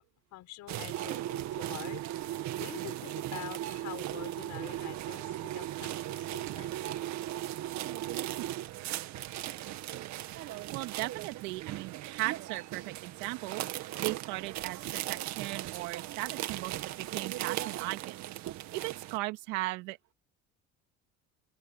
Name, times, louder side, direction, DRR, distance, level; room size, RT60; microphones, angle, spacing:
voice 1, 0.3-2.0 2.3-6.8, left 15 dB, 70° left, 6.2 m, -46 dB
sound 1, 0.7-19.2, right 14 dB, 70° right, 2.0 m, -37 dB
voice 2, 10.3-20.0, right 21 dB, 85° right, 2.3 m, -38 dB
open air
supercardioid pair, 90°, 29 cm